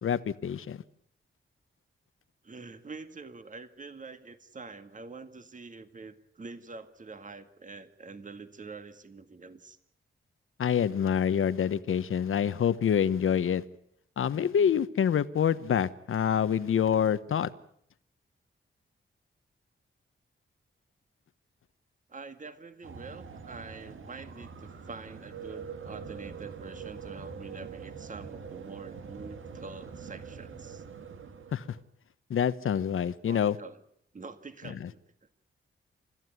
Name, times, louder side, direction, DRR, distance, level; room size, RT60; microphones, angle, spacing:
voice 1, 0.0-0.8 10.6-13.6 14.2-17.5 31.5-31.6 32.3-33.6 34.8-34.9, left 8 dB, 80° left, 14 dB, 1.1 m, -26 dB
voice 2, 2.4-9.8 22.1-30.8 33.3-33.8 34.1-35.0, right 4 dB, 40° right, 10 dB, 1.9 m, -46 dB
sound 1, 22.8-31.8, right 6 dB, 75° right, 2.1 m, -44 dB
30.0 x 14.5 x 9.6 m, 0.70 s
wide cardioid pair, 120°, 21 cm